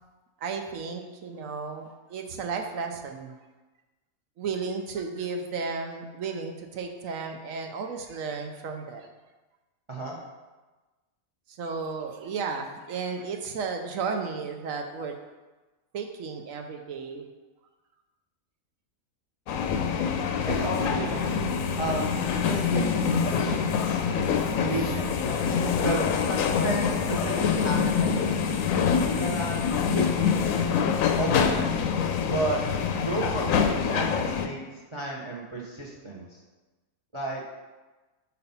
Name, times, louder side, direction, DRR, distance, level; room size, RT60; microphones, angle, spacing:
voice 1, 0.4-3.3 4.4-9.1 11.6-15.1 15.9-17.2 24.6-25.1, right 5 dB, 70° right, 3 dB, 1.0 m, -34 dB
sound 1, 19.5-34.5, left 6 dB, 70° left, 0.9 m, -25 dB
voice 2, 20.5-21.3 21.8-24.0 24.7-25.5 25.8-28.5 29.0-30.6 31.2-31.7 32.3-32.6 33.0-34.6 34.9-36.4 37.1-37.4, right 2 dB, 25° right, -2 dB, 0.7 m, -33 dB
5.4 x 4.2 x 5.5 m, 1.2 s
omnidirectional pair, 1.5 m